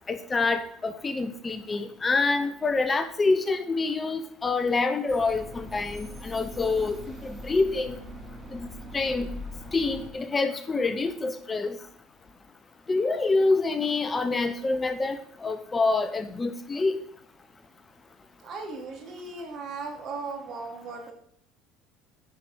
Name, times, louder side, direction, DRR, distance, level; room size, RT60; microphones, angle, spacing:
voice 1, 0.1-8.0 8.5-9.3 9.7-11.8 12.9-17.0, left 3 dB, 25° left, 10 dB, 0.8 m, -26 dB
sound 1, 5.1-10.1, equal, 20° right, 3.3 m, -41 dB
voice 2, 18.4-21.1, right 4 dB, 50° right, 3 dB, 2.6 m, -37 dB
9.8 x 5.2 x 6.2 m, 0.63 s
supercardioid pair, 90°, 0 cm